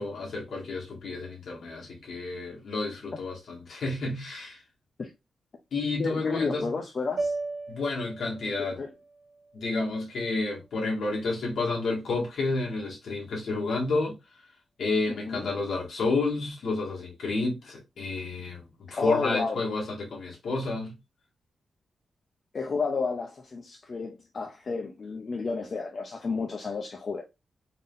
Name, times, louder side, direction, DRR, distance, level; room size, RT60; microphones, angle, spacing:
voice 1, 0.0-4.6 5.7-6.7 7.7-8.8 9.5-14.1 14.8-21.0, left 3 dB, 75° left, 1.9 m, -30 dB
voice 2, 6.0-7.3 8.6-8.9 15.1-15.5 19.0-19.6 22.5-27.2, left 4 dB, 50° left, 0.7 m, -31 dB
sound 1, 7.2-11.4, right 3 dB, 70° right, 1.3 m, -38 dB
3.9 x 3.7 x 2.6 m
cardioid pair, 85°, 0 cm